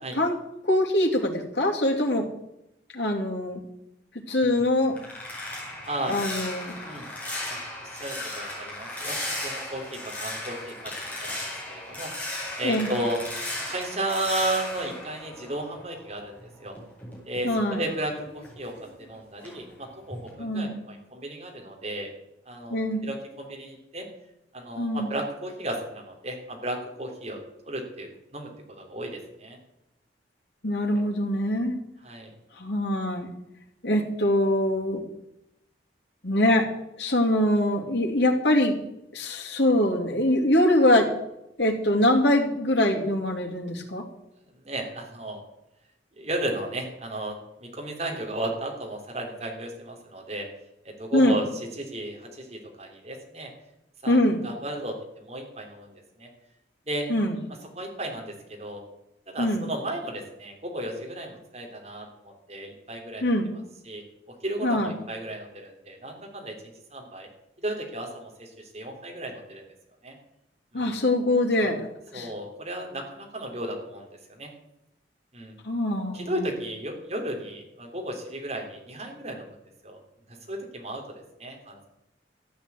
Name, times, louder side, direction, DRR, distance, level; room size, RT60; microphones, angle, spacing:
voice 1, 0.6-2.3 2.9-3.6 4.3-5.0 6.1-6.8 12.6-12.9 17.4-17.8 20.4-20.8 22.7-23.0 24.8-25.1 30.6-31.8 32.6-33.3 33.8-35.0 36.2-36.7 37.0-38.8 39.1-41.1 41.6-44.0 51.1-51.4 54.1-54.4 57.1-57.4 59.4-59.6 63.2-63.5 64.6-64.9 70.7-71.8 72.1-72.3 75.6-76.4, left 1 dB, 75° left, 1 dB, 2.7 m, -23 dB
sound 1, 4.4-16.1 16.4-19.1 19.4-19.7 20.1-20.3, left 1 dB, 10° left, 5.3 m, -36 dB
voice 2, 5.9-6.2 6.8-7.1 7.5-10.9 11.2-13.2 13.7-16.7 17.2-22.1 22.4-22.8 23.0-24.1 24.5-27.4 27.6-29.6 30.9-31.0 32.0-32.3 44.6-45.4 46.2-50.5 50.8-53.5 54.0-55.9 56.2-56.3 56.9-57.1 57.7-58.8 59.3-62.1 62.5-63.3 63.8-64.0 64.4-67.3 67.6-69.6 70.0-70.1 70.7-70.9 71.6-71.7 72.1-74.5 75.3-75.5 76.1-79.6 79.8-80.0 80.5-81.8, right 1 dB, 35° right, 1 dB, 3.3 m, -34 dB
14.0 x 8.5 x 8.2 m, 0.86 s
head